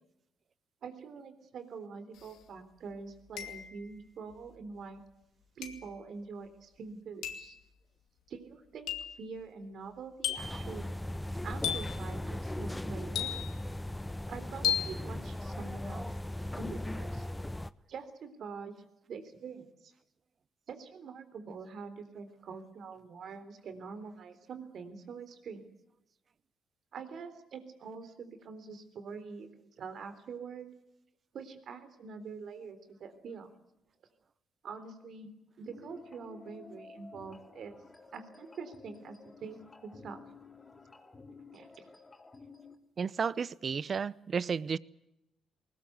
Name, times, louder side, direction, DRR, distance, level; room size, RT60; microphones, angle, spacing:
voice 1, 0.8-5.0 5.6-7.6 8.3-8.9 9.2-10.9 11.4-13.3 14.3-16.1 16.5-17.3 17.9-18.8 19.1-19.9 20.7-25.7 26.9-30.7 31.3-33.5 34.6-35.3 35.6-37.8 38.1-39.1 39.4-40.2 41.5-41.8, right 5 dB, 65° right, 10 dB, 3.6 m, -45 dB
sound 1, 2.2-2.3 3.4-3.9 5.6-6.0 7.2-7.5 8.9-9.2 10.2-10.7 11.6-12.0 13.2-13.7 14.6-15.0, left 10 dB, 85° left, 2.4 m, -34 dB
sound 2, 10.4-17.7, left 1 dB, 10° left, 0.8 m, -38 dB
sound 3, 35.7-42.8, left 4 dB, 25° left, 4.1 m, -53 dB
voice 2, 43.0-44.8, right 6 dB, 45° right, 19 dB, 0.8 m, -32 dB
20.5 x 20.0 x 8.2 m, 0.87 s
cardioid pair, 90°, 0 cm